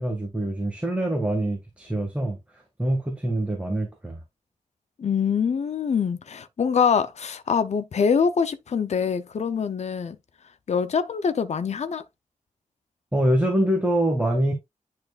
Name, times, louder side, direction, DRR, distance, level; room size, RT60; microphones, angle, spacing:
voice 1, 0.0-2.4 2.8-4.2 13.1-14.5, right 1 dB, 10° right, 1.8 m, -24 dB
voice 2, 5.0-10.2 10.7-12.0, left 6 dB, 55° left, 0.7 m, -24 dB
10.5 x 4.5 x 2.4 m
wide cardioid pair, 150°, 14 cm